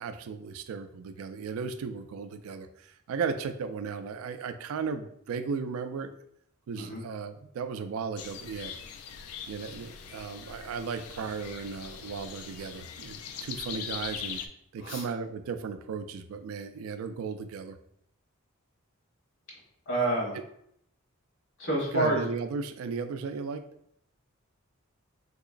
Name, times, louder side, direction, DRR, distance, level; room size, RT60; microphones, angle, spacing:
voice 1, 0.0-6.1 6.7-8.7 9.5-14.4 14.7-17.8 21.9-23.7, right 5 dB, 70° right, 10 dB, 0.3 m, -35 dB
sound 1, 8.2-14.5, left 7 dB, 85° left, 0.3 m, -41 dB
voice 2, 19.9-20.3 21.6-22.2, right 1 dB, 60° left, -3 dB, 1.3 m, -28 dB
3.7 x 2.9 x 2.4 m, 0.71 s
head